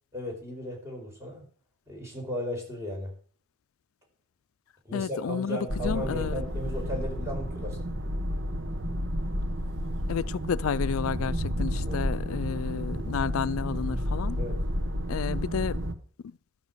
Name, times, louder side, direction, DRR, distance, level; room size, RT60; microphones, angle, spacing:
voice 1, 0.1-1.4 1.9-3.1 4.8-7.9 11.8-12.0 14.4-14.6, equal, 15° right, 5.0 m, -35 dB
voice 2, 4.9-6.4 10.1-14.4 15.1-15.8 16.2-16.4, left 6 dB, 85° left, 0.4 m, -31 dB
sound 1, 5.7-15.9, equal, 65° right, 1.4 m, -31 dB
13.0 x 6.5 x 6.9 m
head